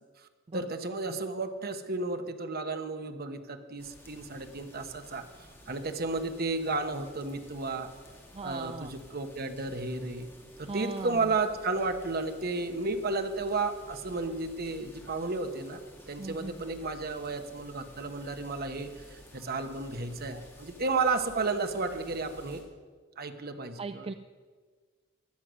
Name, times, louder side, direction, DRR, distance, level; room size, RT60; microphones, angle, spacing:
voice 1, 0.5-5.2 5.7-7.9 8.4-10.3 10.6-15.8 16.1-22.6 23.2-24.1, right 3 dB, 50° right, 7 dB, 1.1 m, -33 dB
sound 1, 3.8-22.6, left 1 dB, 15° left, 2.5 m, -53 dB
voice 2, 8.3-8.9 10.6-11.3 16.2-16.7 23.8-24.1, right 3 dB, 30° right, 11 dB, 0.4 m, -39 dB
16.0 x 11.0 x 6.3 m, 1.5 s
head